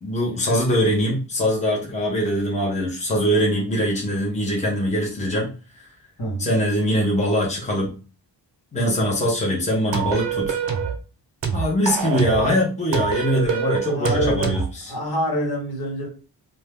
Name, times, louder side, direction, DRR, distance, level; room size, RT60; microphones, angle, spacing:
voice 1, 0.0-5.5 5.8-5.9 6.4-7.9 8.7-10.6 11.5-14.6, equal, 15° left, -3 dB, 0.9 m, -22 dB
voice 2, 6.2-6.5 13.9-14.6 14.9-16.1, equal, 60° left, -1 dB, 1.3 m, -26 dB
sound 1, 9.9-11.0 11.4-12.5 12.9-14.7, right 7 dB, 90° right, 0.8 m, -25 dB
2.7 x 2.2 x 3.4 m, 0.34 s
wide cardioid pair, 145°, 43 cm